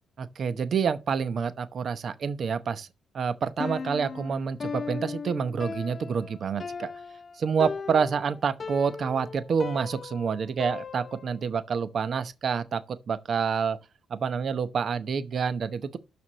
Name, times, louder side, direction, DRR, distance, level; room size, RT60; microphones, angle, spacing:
voice 1, 0.2-2.9 3.1-6.9 7.4-13.8 14.1-16.0, right 6 dB, 50° right, 0.8 m, -28 dB
Piano, 3.6-11.5, left 5 dB, 40° left, 0.7 m, -37 dB
7.0 x 6.2 x 6.6 m
cardioid pair, 90°, 0 cm